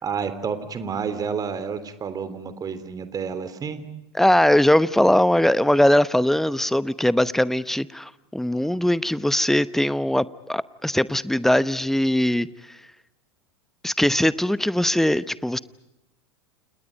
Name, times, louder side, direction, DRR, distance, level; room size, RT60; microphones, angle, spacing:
voice 1, 0.0-3.8, right 6 dB, 25° right, 12 dB, 3.3 m, -30 dB
voice 2, 4.2-12.5 13.8-15.6, left 1 dB, ahead, 17 dB, 0.9 m, -20 dB
29.5 x 29.0 x 5.3 m, 0.90 s
figure-of-eight pair, 90°, 14 cm